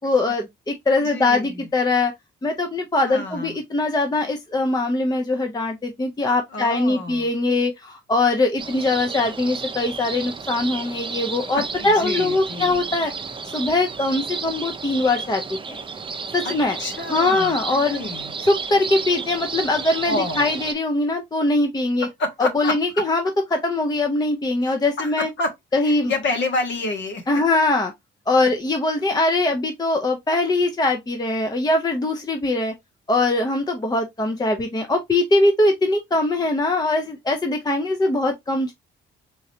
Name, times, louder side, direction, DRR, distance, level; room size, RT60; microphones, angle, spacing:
voice 1, 0.0-2.1 2.4-13.1 13.5-15.4 15.7-15.8 16.3-16.8 17.1-18.0 18.4-22.1 22.5-23.2 23.5-25.3 25.7-26.1 27.3-27.9 28.3-32.7 33.1-38.7, left 2 dB, 20° left, 0.6 m, -22 dB
voice 2, 0.9-1.7 3.0-3.6 6.5-7.3 11.5-12.8 16.4-18.4 20.0-20.5 22.2-23.0 24.6-27.3, left 2 dB, 70° left, 1.3 m, -29 dB
sound 1, 8.6-20.7, right 5 dB, 25° right, 0.6 m, -32 dB
3.8 x 3.1 x 2.7 m
cardioid pair, 90°, 20 cm